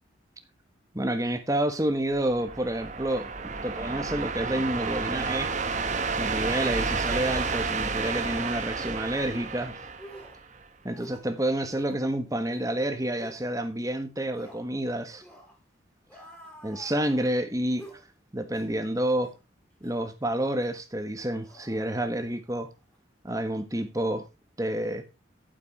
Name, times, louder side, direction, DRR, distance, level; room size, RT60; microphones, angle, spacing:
voice 1, 0.9-3.3 3.6-5.5 6.2-9.8 10.8-15.2 16.6-17.8 18.3-19.3 19.8-22.7 23.2-24.3 24.6-25.0, right 1 dB, 15° right, 1.4 m, -29 dB
sound 1, 2.1-10.6, right 4 dB, 40° right, 1.1 m, -31 dB
sound 2, 8.2-8.5 9.3-9.5 10.0-10.4 10.9-11.3 11.7-12.0 12.5-12.7 13.2-13.4 14.3-14.7 15.2-15.6 16.1-17.3 17.8-18.0 18.5-18.8 19.2-19.4 19.8-20.0 20.6-20.8 21.4-22.5 22.8-23.0, equal, 10° left, 3.4 m, -49 dB
12.5 x 7.4 x 4.2 m
head